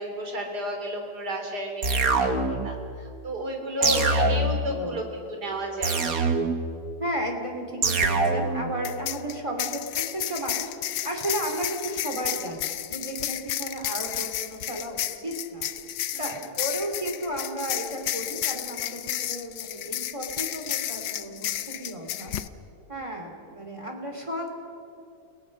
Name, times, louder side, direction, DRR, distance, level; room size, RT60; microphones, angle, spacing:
voice 1, 0.0-1.8 2.2-6.0 16.1-16.4 22.9-23.3, equal, 85° right, 3 dB, 3.9 m, -32 dB
sound 1, 1.8-2.7 3.8-4.7 5.8-6.7 7.8-8.7, right 3 dB, 60° right, 1.8 m, -24 dB
voice 2, 3.8-4.3 4.6-5.0 7.0-10.7 11.0-15.7 16.2-22.3 22.9-24.5, right 1 dB, 20° right, 2 dB, 2.8 m, -33 dB
sound 2, 7.9-8.1 8.8-22.5, left 12 dB, 85° left, 1.3 m, -32 dB
30.0 x 18.5 x 6.5 m, 2.6 s
omnidirectional pair, 1.7 m